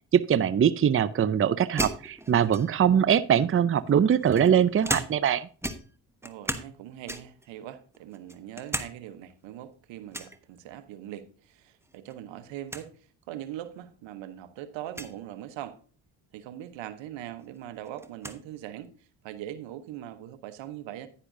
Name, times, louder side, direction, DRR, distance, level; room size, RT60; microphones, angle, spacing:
voice 1, 0.1-5.5, right 8 dB, 30° right, 0.6 m, -22 dB
sound 1, 1.8-2.9 3.8-5.4 5.6-6.8 7.1-7.5 7.9-8.9 9.2-9.3 10.1-10.4 11.8-12.2 12.4-12.5 12.7-12.9 13.7-13.8 14.9-15.1 16.8-16.9 17.3-18.4, right 1 dB, 5° right, 1.1 m, -35 dB
voice 2, 6.2-12.9 13.3-15.8 16.3-18.9 19.2-21.1, right 12 dB, 80° right, 1.1 m, -41 dB
10.0 x 9.8 x 2.7 m
supercardioid pair, 60°, 44 cm